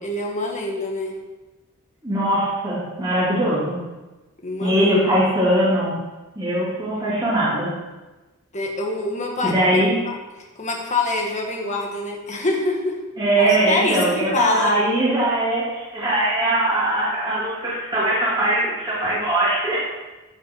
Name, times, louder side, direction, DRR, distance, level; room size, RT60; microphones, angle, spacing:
voice 1, 0.0-1.1 4.4-5.0 5.3-5.4 8.5-9.8 10.0-10.1 10.6-12.9 13.4-14.0 14.3-14.7, left 2 dB, 35° left, 0 dB, 1.8 m, -25 dB
voice 2, 2.0-3.8 4.6-5.9 6.3-7.7 9.4-9.9 13.2-19.8, right 1 dB, 20° right, -10 dB, 3.0 m, -21 dB
13.5 x 6.1 x 4.7 m, 1.1 s
head